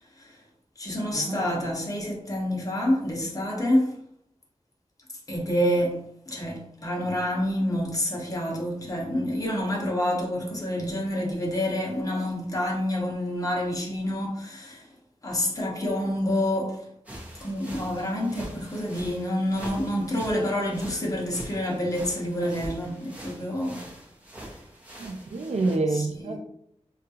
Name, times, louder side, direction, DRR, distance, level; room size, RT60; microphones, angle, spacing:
voice 1, 0.8-3.9 5.3-6.0 6.3-14.9 15.2-16.8 17.4-23.8 25.9-26.4, left 1 dB, 30° left, 0.8 m, -28 dB
sound 1, 17.0-25.8, equal, 10° right, 0.8 m, -43 dB
voice 2, 25.0-26.4, right 3 dB, 75° right, 0.4 m, -27 dB
3.6 x 2.3 x 2.8 m
wide cardioid pair, 75°, 12 cm